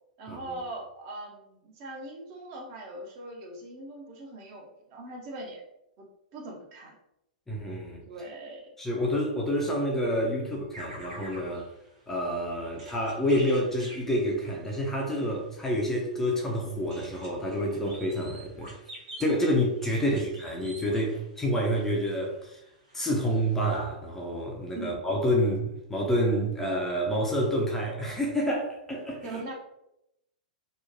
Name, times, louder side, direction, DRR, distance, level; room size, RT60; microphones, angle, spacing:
voice 1, 0.2-5.6 6.0-6.1 6.3-7.0 8.0-8.7 20.0-20.3 24.7-24.9 29.2-29.5, right 1 dB, 40° right, 0 dB, 0.6 m, -41 dB
voice 2, 7.5-8.0 8.8-11.7 12.1-18.7 19.2-22.6 22.9-29.4, equal, 10° left, -2 dB, 0.4 m, -28 dB
sound 1, 10.7-22.4 22.9-23.0 23.2-23.7, right 1 dB, 55° right, 1.2 m, -48 dB
2.9 x 2.1 x 2.5 m, 0.84 s
figure-of-eight pair, 105°, 4 cm